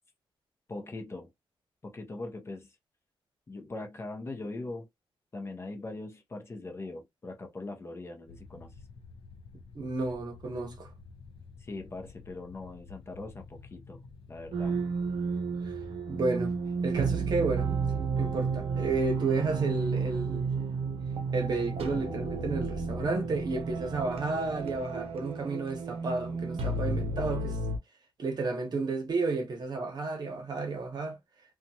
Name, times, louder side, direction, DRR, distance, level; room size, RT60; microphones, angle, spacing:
voice 1, 0.7-1.3 1.8-2.8 3.5-4.9 5.3-8.8 11.6-14.0 14.3-14.8, left 2 dB, 25° left, 0.6 m, -41 dB
sound 1, 8.3-24.8, left 5 dB, 70° left, 0.6 m, -51 dB
voice 2, 9.5-10.9 15.6-15.8 16.1-16.6 16.8-17.7 18.2-20.5 21.3-27.6 28.2-31.2, right 3 dB, 45° right, 0.9 m, -32 dB
sound 2, 14.5-27.8, right 4 dB, 80° right, 0.6 m, -32 dB
2.8 x 2.3 x 2.7 m
wide cardioid pair, 170°, 10 cm